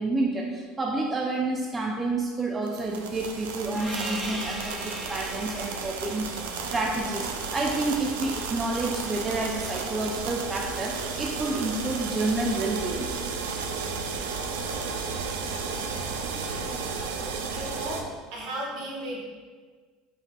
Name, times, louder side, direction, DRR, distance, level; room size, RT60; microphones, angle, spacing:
voice 1, 0.0-6.4 6.7-13.1, right 2 dB, 20° right, 0 dB, 0.4 m, -29 dB
sound 1, 2.6-18.0, right 5 dB, 90° right, 0.4 m, -33 dB
Gong, 3.7-8.7, equal, 5° left, 0.7 m, -39 dB
voice 2, 17.5-18.0 18.3-19.2, right 1 dB, 65° right, -4 dB, 1.5 m, -35 dB
4.8 x 3.8 x 2.2 m, 1.5 s
supercardioid pair, 100°, 0 cm